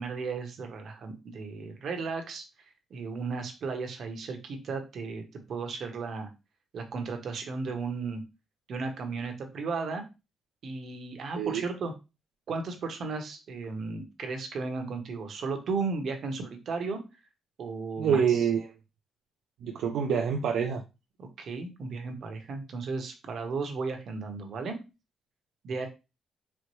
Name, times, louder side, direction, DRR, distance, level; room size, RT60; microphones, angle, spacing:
voice 1, 0.0-2.4 2.9-6.3 6.7-8.2 8.7-10.0 10.6-11.9 12.5-17.0 17.6-18.4 21.2-24.8 25.6-25.9, right 4 dB, 60° right, 5 dB, 0.9 m, -35 dB
voice 2, 18.0-18.7 19.6-20.8, right 7 dB, 80° right, 2 dB, 0.4 m, -26 dB
4.4 x 2.1 x 3.0 m, 0.27 s
cardioid pair, 90°, 0 cm